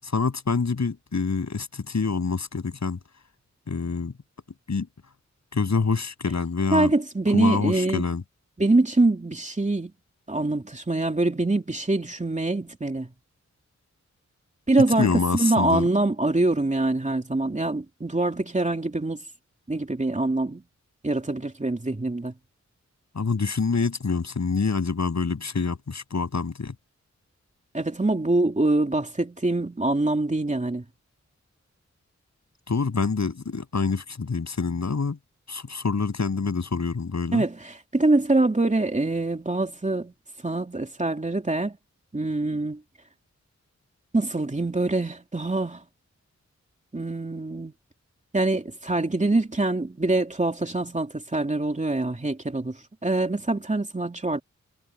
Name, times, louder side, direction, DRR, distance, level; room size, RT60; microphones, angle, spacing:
voice 1, 0.0-3.0 3.7-4.1 4.7-4.9 5.5-6.9 7.3-8.2 15.0-15.9 23.1-26.7 32.7-35.2 35.5-37.4, left 4 dB, 70° left, 8.0 m, -26 dB
voice 2, 6.7-8.0 8.6-9.9 10.3-13.1 14.7-19.2 19.7-20.6 21.0-22.3 27.7-30.8 37.3-40.1 40.4-41.7 42.1-42.8 44.1-45.8 46.9-47.7 48.3-52.8 53.0-54.4, right 2 dB, 25° right, 3.0 m, -24 dB
wide cardioid pair, 100°, 29 cm